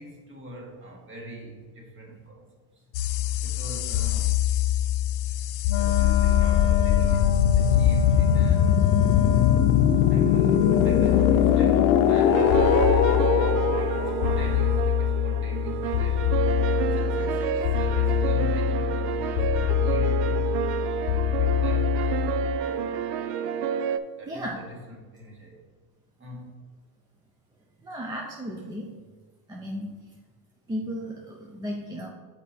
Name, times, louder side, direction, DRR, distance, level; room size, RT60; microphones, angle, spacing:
voice 1, 0.0-2.5 2.7-2.8 3.4-4.5 5.8-9.1 10.1-16.3 16.7-20.8 21.2-23.2 24.1-25.6 26.2-26.6, equal, 25° right, 1 dB, 1.4 m, -42 dB
sound 1, 2.9-22.6, left 10 dB, 90° left, 0.6 m, -22 dB
Wind instrument woodwind instrument, 5.7-12.3, left 10 dB, 30° left, 0.6 m, -29 dB
sound 2, 12.3-24.0, right 7 dB, 80° right, 0.6 m, -28 dB
voice 2, 24.3-24.7 27.8-28.9 29.5-29.9 30.7-32.1, equal, 10° right, -1 dB, 0.3 m, -34 dB
7.1 x 4.7 x 4.2 m, 1.4 s
cardioid pair, 145°, 46 cm